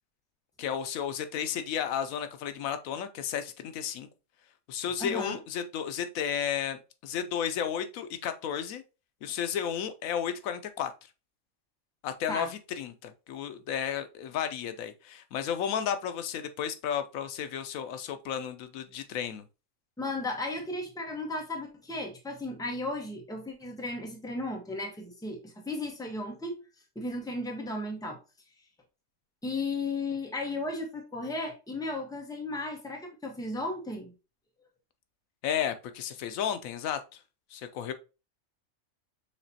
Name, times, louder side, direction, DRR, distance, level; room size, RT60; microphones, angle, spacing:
voice 1, 0.6-4.1 4.7-8.8 9.2-10.9 12.0-19.5 35.4-37.2 37.5-37.9, left 8 dB, 90° left, 1.1 m, -33 dB
voice 2, 5.0-5.4 12.3-12.5 20.0-26.6 26.9-28.2 29.4-34.1, left 2 dB, 5° left, 0.8 m, -35 dB
6.5 x 2.9 x 2.7 m
omnidirectional pair, 1.4 m